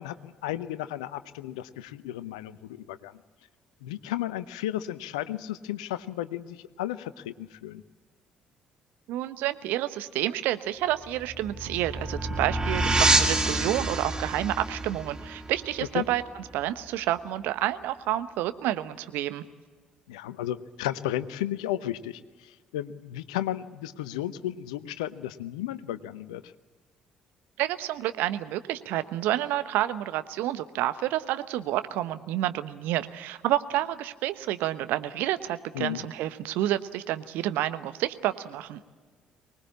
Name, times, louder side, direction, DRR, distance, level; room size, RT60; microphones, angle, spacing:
voice 1, 0.0-3.1 3.8-7.8 15.9-16.1 20.1-26.5 35.7-36.1, left 13 dB, 75° left, 14 dB, 0.8 m, -34 dB
voice 2, 9.1-16.2 16.5-19.4 27.6-38.8, right 14 dB, 65° right, 11 dB, 1.0 m, -29 dB
sound 1, 11.1-16.4, right 2 dB, 20° right, 2.4 m, -27 dB
24.5 x 20.0 x 8.6 m, 1.4 s
figure-of-eight pair, 50°, 4 cm